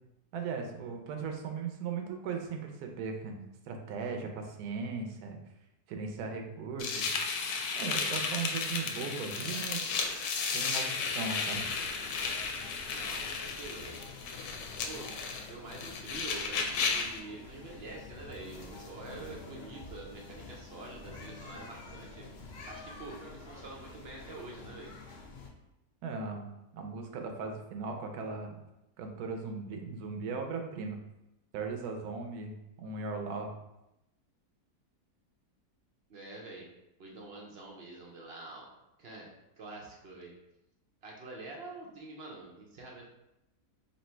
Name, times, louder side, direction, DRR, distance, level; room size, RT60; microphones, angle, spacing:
voice 1, 0.3-3.4 3.7-5.4 5.9-7.1 7.8-9.8 10.5-11.6 26.0-26.5 26.7-28.6 29.0-31.0 31.5-33.5, right 4 dB, 75° right, 4 dB, 1.1 m, -38 dB
sound 1, 6.8-17.2, left 5 dB, 75° left, 1.1 m, -34 dB
sound 2, 11.5-25.5, left 3 dB, 60° left, 0.5 m, -49 dB
voice 2, 12.9-14.0 14.8-15.1 15.5-22.3 22.7-24.9 36.1-36.7 37.0-38.7 39.0-40.3 41.0-43.1, right 2 dB, 55° right, -2 dB, 0.7 m, -46 dB
3.2 x 2.7 x 4.3 m, 0.89 s
omnidirectional pair, 1.7 m